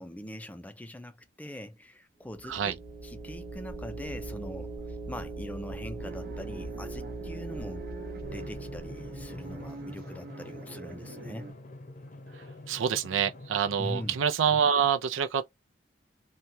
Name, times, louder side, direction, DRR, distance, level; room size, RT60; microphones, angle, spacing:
voice 1, 0.0-7.9 8.3-11.5 13.8-14.2, left 1 dB, 10° left, 0.4 m, -42 dB
sound 1, 2.2-9.9, right 2 dB, 20° right, 1.0 m, -40 dB
sound 2, 6.0-11.5, right 2 dB, 50° right, 0.7 m, -46 dB
Drum, 8.2-14.3, left 1 dB, 40° left, 0.7 m, -46 dB
voice 2, 12.7-15.5, right 7 dB, 90° right, 0.5 m, -26 dB
3.0 x 2.2 x 2.6 m
head